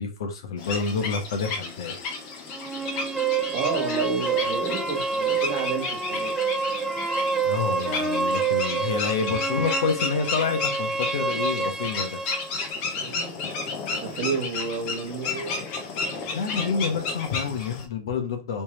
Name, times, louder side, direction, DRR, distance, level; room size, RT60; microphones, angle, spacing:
voice 1, 0.0-2.0 7.4-12.2 16.3-18.6, left 5 dB, 70° left, 1.0 m, -28 dB
sound 1, 0.6-17.8, left 4 dB, 35° left, 0.9 m, -33 dB
sound 2, 2.5-12.5, right 4 dB, 10° right, 0.3 m, -28 dB
voice 2, 3.5-6.4 13.0-13.3 14.0-15.6, right 5 dB, 50° right, 1.5 m, -30 dB
3.4 x 3.0 x 3.2 m
supercardioid pair, 160°, 2 cm